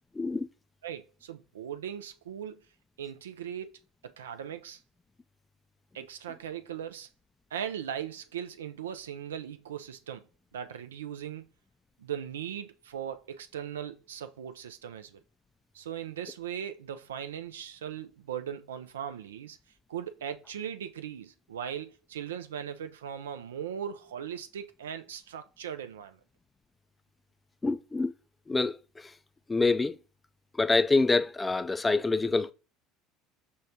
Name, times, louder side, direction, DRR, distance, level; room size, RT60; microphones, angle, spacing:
voice 1, 0.2-0.5 27.6-28.1 28.5-29.1 29.5-30.0 30.6-32.5, left 3 dB, 20° left, 0.3 m, -26 dB
voice 2, 0.8-2.6 3.0-3.7 4.0-4.8 5.9-7.1 7.5-10.3 10.5-11.5 12.0-15.2 15.7-19.6 19.9-26.2, right 9 dB, 85° right, 0.3 m, -39 dB
6.3 x 2.2 x 2.7 m
hypercardioid pair, 70°, 0 cm